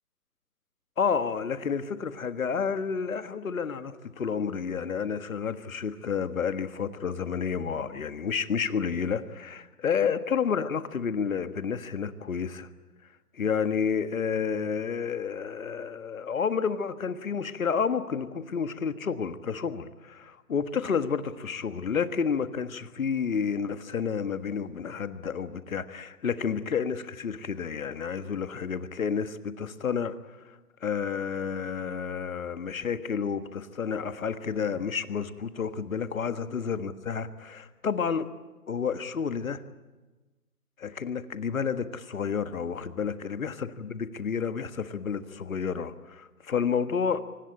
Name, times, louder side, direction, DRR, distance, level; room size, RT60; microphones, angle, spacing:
voice 1, 1.0-12.7 13.3-30.1 30.8-38.3 38.7-39.6 40.8-47.3, left 6 dB, 60° left, 11 dB, 1.6 m, -30 dB
25.0 x 18.5 x 8.9 m, 1.2 s
hypercardioid pair, 155°, 46 cm